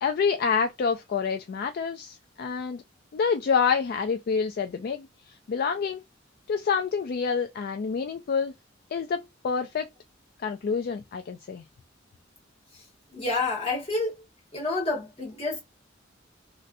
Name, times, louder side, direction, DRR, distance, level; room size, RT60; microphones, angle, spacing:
voice 1, 0.0-2.8 3.1-6.0 6.5-8.5 8.9-9.9 10.4-11.6, left 6 dB, 50° left, 0.3 m, -27 dB
voice 2, 13.1-14.1 14.5-15.6, left 3 dB, 30° left, 1.4 m, -28 dB
3.1 x 2.6 x 2.5 m
head